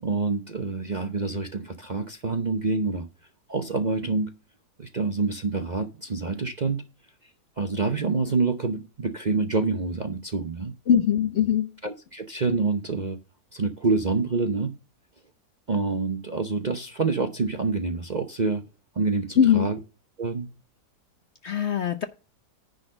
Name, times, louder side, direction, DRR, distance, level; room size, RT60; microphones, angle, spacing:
voice 1, 0.0-3.1 3.5-4.3 4.8-6.8 7.6-10.7 11.8-13.2 13.5-14.8 15.7-18.6 18.9-19.8 20.2-20.5, right 4 dB, 40° right, 0.6 m, -27 dB
voice 2, 10.9-11.7 19.4-19.7 21.4-22.0, left 8 dB, 55° left, 0.8 m, -21 dB
10.0 x 4.1 x 6.5 m
omnidirectional pair, 1.7 m